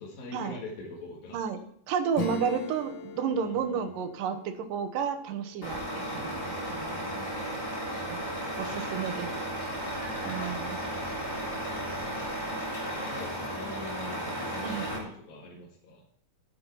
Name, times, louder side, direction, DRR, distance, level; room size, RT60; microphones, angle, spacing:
voice 1, 0.0-1.4 3.3-4.0 6.9-9.6 11.0-16.0, left 3 dB, 90° left, -3 dB, 3.6 m, -46 dB
voice 2, 1.9-7.1 8.1-8.2 8.6-9.3 10.2-10.8 14.6-14.9, right 7 dB, 75° right, 7 dB, 2.6 m, -32 dB
Acoustic guitar / Strum, 2.1-6.4, left 6 dB, 65° left, 1.3 m, -42 dB
Truck, 5.6-15.0, right 1 dB, 20° left, 3.9 m, -34 dB
11.5 x 9.4 x 4.5 m, 0.65 s
omnidirectional pair, 3.9 m